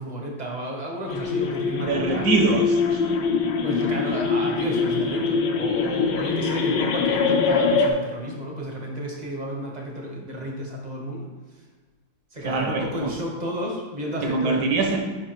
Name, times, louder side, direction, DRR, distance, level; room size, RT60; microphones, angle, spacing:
voice 1, 0.0-2.3 3.6-11.6 12.3-15.0, right 1 dB, 35° right, -1 dB, 0.7 m, -32 dB
sound 1, 1.1-7.9, left 5 dB, 70° left, 1.1 m, -23 dB
voice 2, 1.9-3.1 12.4-13.1 14.2-15.0, right 3 dB, 65° right, 2 dB, 1.5 m, -23 dB
5.6 x 4.8 x 4.5 m, 1.4 s
omnidirectional pair, 2.2 m